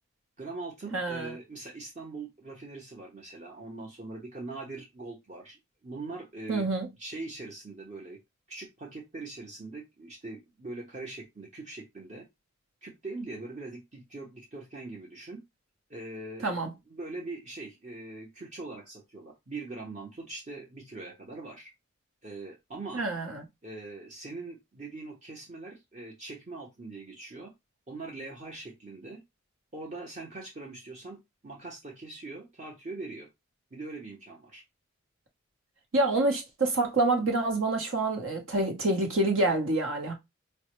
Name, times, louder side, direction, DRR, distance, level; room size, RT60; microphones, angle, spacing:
voice 1, 0.4-6.7 7.0-8.2 8.5-12.3 12.8-15.4 15.9-21.7 22.2-23.0 23.6-27.5 27.9-29.2 29.7-31.2 31.4-33.3 33.7-34.6, right 3 dB, 35° right, 0.9 m, -42 dB
voice 2, 0.9-1.3 6.5-6.9 16.4-16.7 22.9-23.4 35.9-40.1, right 2 dB, 75° right, 1.0 m, -27 dB
5.4 x 2.2 x 3.0 m
head